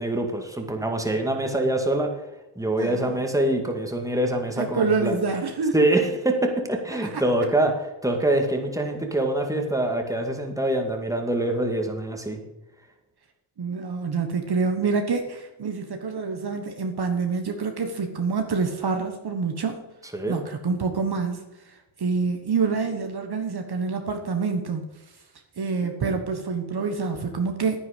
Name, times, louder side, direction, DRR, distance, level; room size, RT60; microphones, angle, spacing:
voice 1, 0.0-2.1 2.6-5.2 5.7-12.4 20.1-20.4, right 1 dB, 5° right, 2 dB, 2.1 m, -25 dB
voice 2, 2.8-3.1 4.6-5.7 7.0-7.2 13.6-19.7 20.3-21.4 22.0-24.8 25.6-27.8, right 4 dB, 50° right, 5 dB, 1.4 m, -26 dB
10.0 x 9.3 x 5.3 m, 1.0 s
cardioid pair, 70°, 49 cm